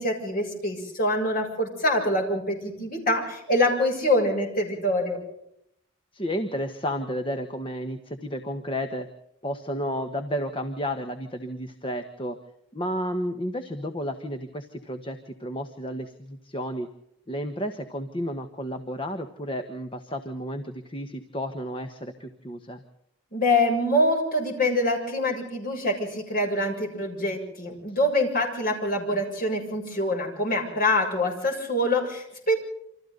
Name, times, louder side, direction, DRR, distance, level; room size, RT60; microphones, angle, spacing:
voice 1, 0.0-5.2 23.3-32.6, left 1 dB, 40° left, 1 dB, 7.2 m, -25 dB
voice 2, 6.1-9.1 9.4-12.4 12.7-16.9 17.3-22.8, equal, 25° left, 6 dB, 1.4 m, -32 dB
28.5 x 26.5 x 4.0 m, 0.77 s
head